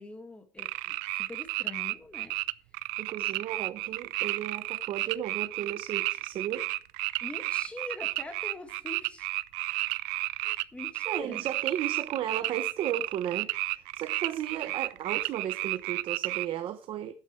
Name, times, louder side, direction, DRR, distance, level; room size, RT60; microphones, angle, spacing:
voice 1, 0.0-2.4 7.2-9.3 10.4-11.5, left 2 dB, 10° left, 1.9 m, -43 dB
sound 1, 0.6-16.5, right 22 dB, 85° right, 0.4 m, -32 dB
voice 2, 3.0-6.7 11.1-17.1, right 10 dB, 45° right, 0.8 m, -34 dB
12.0 x 8.9 x 3.2 m
cardioid pair, 145°, 12 cm